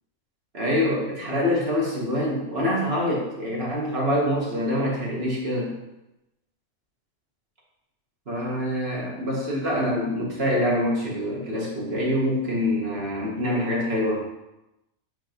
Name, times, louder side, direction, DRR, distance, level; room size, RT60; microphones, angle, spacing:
voice 1, 0.5-5.7 8.3-14.2, left 1 dB, 50° right, -4 dB, 2.0 m, -25 dB
8.7 x 3.2 x 5.2 m, 0.95 s
omnidirectional pair, 1.4 m